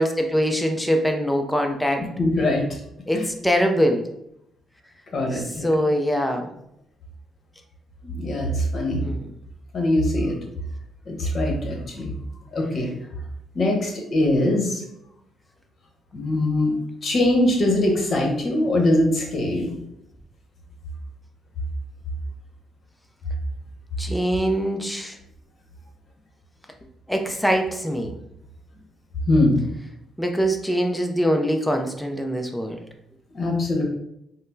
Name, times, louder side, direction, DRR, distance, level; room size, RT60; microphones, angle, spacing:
voice 1, 0.0-2.1 3.1-4.0 5.3-6.5 9.0-9.2 24.0-25.2 27.1-28.1 30.2-32.8, equal, 5° left, 3 dB, 0.4 m, -23 dB
voice 2, 2.0-2.6 3.1-3.2 5.1-5.7 8.0-9.0 9.7-10.4 11.1-12.1 12.5-12.9 13.5-14.8 16.1-16.7 17.0-19.8 29.3-29.7 33.3-33.8, left 1 dB, 45° left, 0 dB, 1.0 m, -22 dB
4.1 x 2.0 x 2.6 m, 0.78 s
cardioid pair, 90°, 0 cm